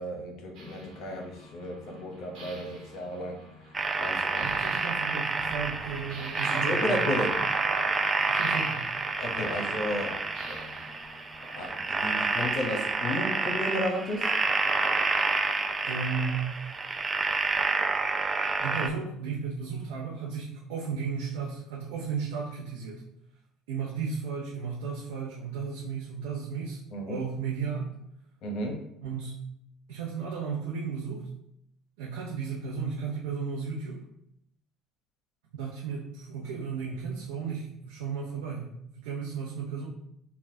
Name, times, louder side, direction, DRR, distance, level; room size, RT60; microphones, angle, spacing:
voice 1, 0.0-3.4 4.0-4.5 6.4-7.3 9.2-10.2 10.5-10.8 11.5-14.3 26.9-27.2 28.4-28.8, left 1 dB, 60° left, 2 dB, 0.8 m, -33 dB
sound 1, 0.5-11.8, equal, 60° right, 1.1 m, -48 dB
sound 2, 3.7-18.9, right 3 dB, 25° right, 0.4 m, -29 dB
voice 2, 4.4-7.5 8.3-8.8 15.8-16.5 18.6-23.0 23.7-26.8 27.1-27.9 29.0-29.3 29.9-31.3 32.0-34.0 35.5-38.7 38.9-39.9, right 5 dB, 75° right, -4 dB, 0.7 m, -34 dB
5.5 x 2.3 x 2.7 m, 0.75 s
hypercardioid pair, 60°, 0 cm